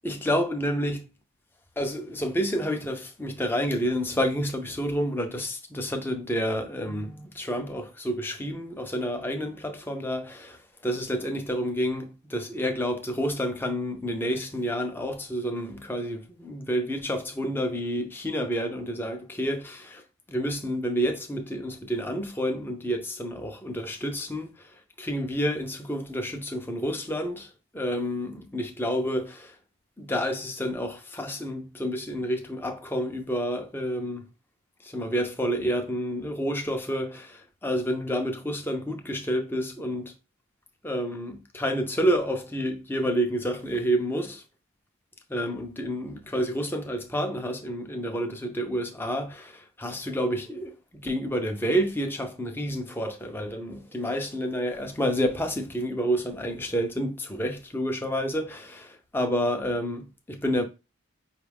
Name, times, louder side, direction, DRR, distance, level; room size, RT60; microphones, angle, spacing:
voice 1, 0.0-1.0 1.8-10.6 10.8-20.0 20.3-24.5 25.0-27.5 27.7-29.5 30.0-34.3 34.8-40.1 40.8-44.4 45.3-50.7 51.0-60.6, equal, 10° left, 0.6 m, -29 dB
5.3 x 2.3 x 3.5 m
head